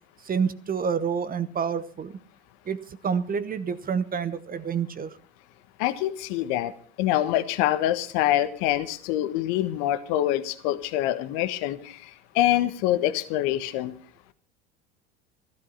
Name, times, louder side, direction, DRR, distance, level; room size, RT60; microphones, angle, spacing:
voice 1, 0.2-2.2 2.6-5.2, right 6 dB, 25° right, 14 dB, 1.1 m, -28 dB
voice 2, 5.8-6.7 7.0-12.0 12.3-13.9, left 13 dB, 60° left, 11 dB, 1.4 m, -25 dB
14.0 x 13.0 x 5.7 m, 0.42 s
hypercardioid pair, 85°, 32 cm